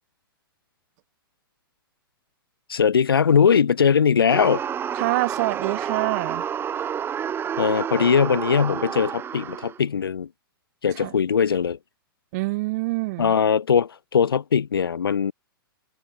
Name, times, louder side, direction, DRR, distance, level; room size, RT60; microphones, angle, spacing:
voice 1, 2.7-4.6 7.6-10.3 10.8-11.8 13.2-15.3, left 7 dB, 75° left, 0.6 m, -20 dB
sound 1, 4.3-9.8, right 8 dB, 20° right, 1.5 m, -29 dB
voice 2, 4.9-6.4 11.0-11.1 12.3-13.3, right 23 dB, 45° right, 2.8 m, -26 dB
figure-of-eight pair, 105°, 12 cm